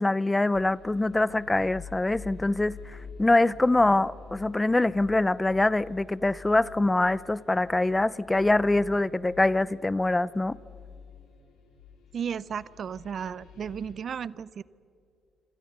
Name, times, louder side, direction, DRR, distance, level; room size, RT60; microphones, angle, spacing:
voice 1, 0.0-2.8 3.2-10.6, left 2 dB, 15° left, 0.5 m, -24 dB
sound 1, 0.5-13.9, left 5 dB, 90° left, 4.4 m, -48 dB
voice 2, 12.1-14.6, right 7 dB, 55° right, 0.5 m, -34 dB
26.5 x 26.5 x 6.7 m
cardioid pair, 90°, 0 cm